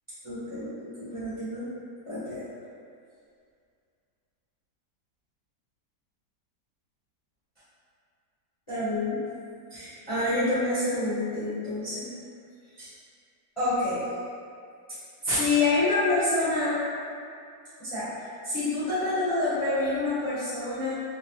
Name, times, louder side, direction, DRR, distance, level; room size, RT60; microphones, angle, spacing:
voice 1, 0.2-1.6 2.1-2.4 8.7-9.1 9.7-12.0 12.8-12.9 13.6-14.0 15.2-16.8 17.8-18.1 18.4-21.0, left 2 dB, 20° left, -15 dB, 1.0 m, -27 dB
4.0 x 2.2 x 3.0 m, 2.3 s
omnidirectional pair, 1.9 m